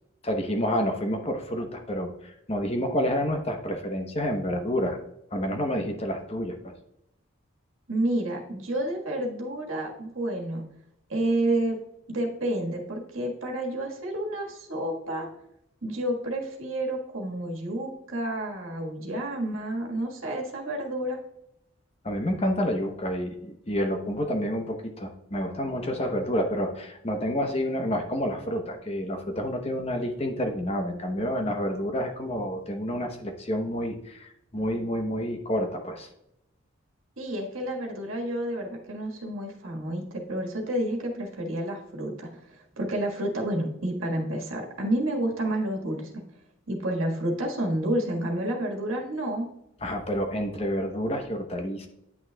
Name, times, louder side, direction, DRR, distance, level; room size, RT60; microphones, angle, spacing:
voice 1, 0.2-5.0 5.3-6.7 22.0-36.1 49.8-51.9, equal, 30° left, 4 dB, 0.9 m, -29 dB
voice 2, 7.9-10.6 11.1-11.8 12.1-15.3 15.8-21.2 37.2-42.3 42.8-46.2 46.7-49.5, right 1 dB, 85° right, 1 dB, 1.5 m, -30 dB
9.5 x 6.2 x 2.3 m, 0.81 s
head